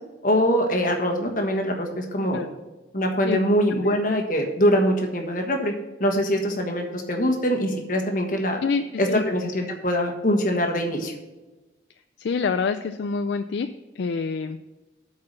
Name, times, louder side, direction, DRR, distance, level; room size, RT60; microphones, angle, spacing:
voice 1, 0.2-2.4 2.9-5.7 6.0-8.6 9.0-11.1, equal, 45° left, 3 dB, 1.4 m, -23 dB
voice 2, 12.2-13.7 14.0-14.6, left 5 dB, 65° left, 9 dB, 0.4 m, -26 dB
8.3 x 4.8 x 7.4 m, 1.1 s
head